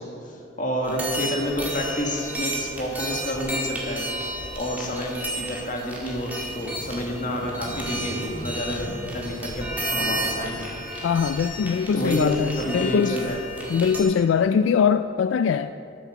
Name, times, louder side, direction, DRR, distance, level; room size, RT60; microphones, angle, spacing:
voice 1, 0.0-4.1 4.5-10.7 11.9-13.4, equal, 45° left, 0 dB, 1.8 m, -29 dB
sound 1, 0.8-14.0, right 1 dB, 10° right, 1.8 m, -32 dB
sound 2, 6.5-12.3, equal, 45° right, 2.1 m, -40 dB
voice 2, 11.0-13.2 13.7-15.7, left 6 dB, 80° left, 12 dB, 0.3 m, -22 dB
13.0 x 7.5 x 6.7 m, 2.7 s
head